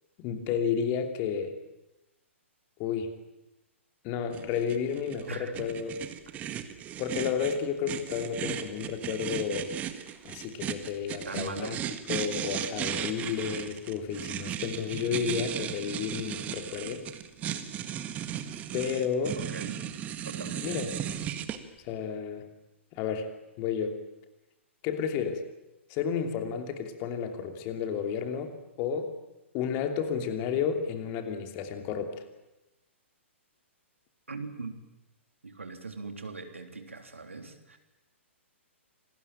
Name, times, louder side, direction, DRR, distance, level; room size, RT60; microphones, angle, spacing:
voice 1, 0.2-1.5 2.8-3.1 4.0-6.0 7.0-9.7 10.2-11.8 12.1-17.1 18.7-19.4 20.6-20.9 21.8-22.5 22.9-23.3 23.6-24.0 24.8-25.4 25.9-29.1 29.5-32.2, left 7 dB, 30° left, 6 dB, 2.9 m, -31 dB
sound 1, 4.3-21.6, right 10 dB, 20° right, 1.7 m, -36 dB
voice 2, 5.3-5.7 6.3-6.4 11.2-11.8 19.4-19.8 20.2-20.9 34.3-34.7 35.4-37.8, right 3 dB, 75° right, 6 dB, 3.4 m, -40 dB
27.0 x 20.0 x 9.0 m, 0.97 s
figure-of-eight pair, 115°, 7 cm